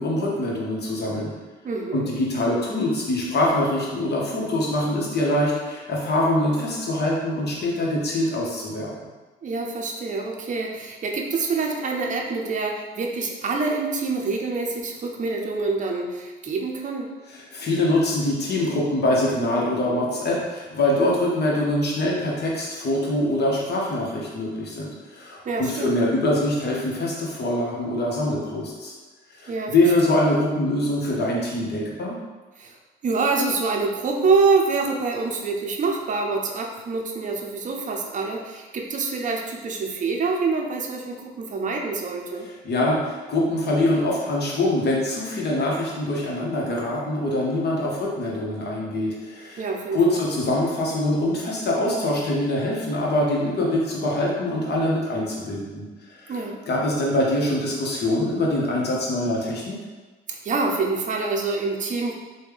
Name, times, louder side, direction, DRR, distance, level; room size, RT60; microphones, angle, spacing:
voice 1, 0.0-1.3 1.9-8.9 17.3-28.9 29.4-32.2 42.6-49.6 49.9-55.8 56.2-56.4 56.7-59.8, left 1 dB, 55° left, -3 dB, 1.0 m, -24 dB
voice 2, 1.6-2.1 9.4-17.1 25.4-25.9 29.5-29.7 32.6-32.7 33.0-42.5 49.6-50.2 56.3-56.6 60.3-62.1, right 4 dB, 40° right, 1 dB, 0.5 m, -26 dB
3.2 x 2.2 x 3.5 m, 1.3 s
cardioid pair, 75°, 21 cm